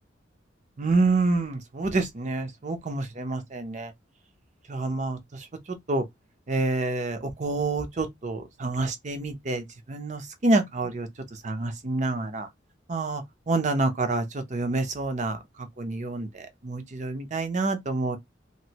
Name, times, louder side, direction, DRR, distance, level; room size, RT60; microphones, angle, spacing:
voice 1, 0.8-3.9 4.7-5.4 5.9-6.0 6.5-11.1 11.4-12.5 12.9-15.4 15.8-18.2, right 2 dB, 40° right, 0.6 m, -27 dB
3.0 x 2.6 x 2.8 m
head